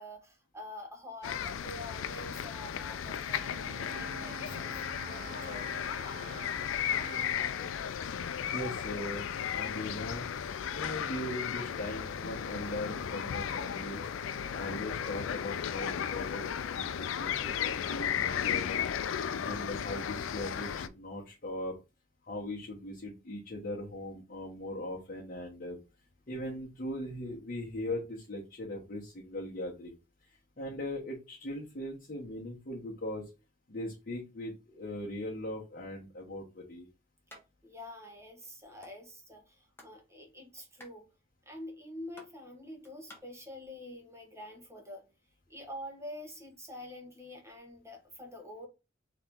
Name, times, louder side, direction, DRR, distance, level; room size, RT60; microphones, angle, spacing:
voice 1, 0.0-4.7 5.0-5.9 37.6-41.1 41.5-45.0 45.5-48.7, left 1 dB, 15° right, 1.1 m, -47 dB
sound 1, 1.2-20.9, left 8 dB, 70° left, 0.4 m, -35 dB
Bowed string instrument, 3.2-7.6, right 5 dB, 45° right, 0.5 m, -48 dB
voice 2, 8.5-9.3 9.5-10.3 10.7-14.0 14.5-16.5 16.7-21.7 22.2-25.8 26.3-29.9 30.6-33.3 33.7-36.9, left 1 dB, 45° left, 1.1 m, -39 dB
sound 2, 37.3-37.4 37.8-37.9 38.1-38.9 39.4-40.0 40.2-43.2, left 1 dB, 10° left, 1.0 m, -54 dB
3.8 x 3.0 x 3.5 m
head